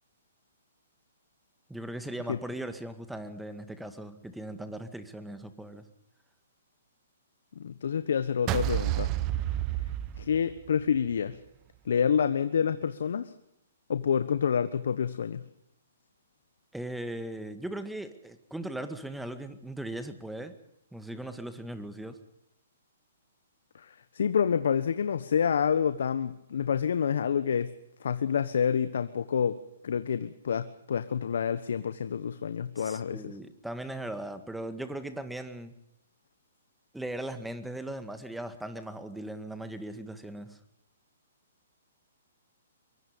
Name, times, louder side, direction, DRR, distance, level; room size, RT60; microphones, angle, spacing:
voice 1, 1.7-5.9 16.7-20.6 20.9-22.2 32.8-35.7 36.9-40.6, right 1 dB, 5° right, 9 dB, 1.9 m, -38 dB
voice 2, 7.6-9.1 10.2-11.4 11.8-13.3 13.9-15.4 23.7-27.7 28.0-33.2, left 7 dB, 70° left, 12 dB, 1.1 m, -28 dB
sound 1, 8.5-10.8, right 14 dB, 30° right, 1.1 m, -30 dB
23.5 x 23.5 x 5.3 m, 0.79 s
hypercardioid pair, 135°, 0 cm